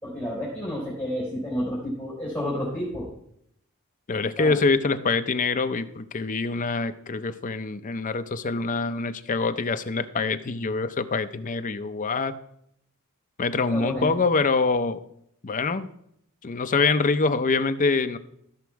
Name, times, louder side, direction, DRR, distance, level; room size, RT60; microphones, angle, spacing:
voice 1, 0.0-3.1 4.4-4.6 13.7-14.1, equal, 5° left, -7 dB, 3.7 m, -30 dB
voice 2, 4.1-12.3 13.4-15.0 15.4-15.9 16.4-18.2, left 4 dB, 40° left, 10 dB, 0.6 m, -25 dB
13.0 x 6.1 x 4.6 m, 0.73 s
head